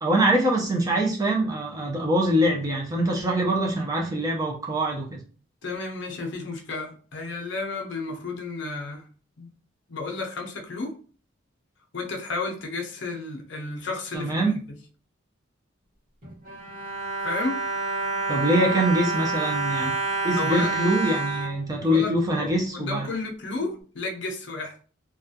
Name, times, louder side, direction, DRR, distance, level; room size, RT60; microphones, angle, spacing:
voice 1, 0.0-5.2 14.1-14.5 18.3-19.9 20.2-23.1, right 1 dB, 20° right, 0 dB, 0.4 m, -24 dB
voice 2, 5.6-9.0 9.4-9.5 9.9-11.0 11.9-14.4 14.7-14.8 17.2-17.6 20.3-20.7 21.8-24.8, left 3 dB, 60° left, 2 dB, 0.6 m, -32 dB
Bowed string instrument, 16.2-22.5 23.1-23.2 23.5-23.7, right 3 dB, 35° right, 1.2 m, -28 dB
2.3 x 2.2 x 2.6 m, 0.39 s
head